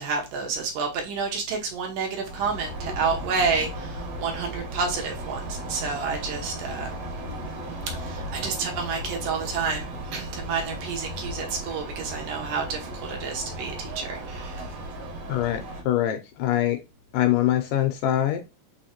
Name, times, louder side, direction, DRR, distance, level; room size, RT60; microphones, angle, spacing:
voice 1, 0.0-6.9 7.9-14.7, right 5 dB, 70° right, 2.4 m, -30 dB
sound 1, 2.2-15.8, right 1 dB, 55° right, 2.2 m, -35 dB
voice 2, 15.3-16.8 17.1-18.4, left 12 dB, 80° left, 2.1 m, -24 dB
5.6 x 3.0 x 2.8 m
omnidirectional pair, 4.1 m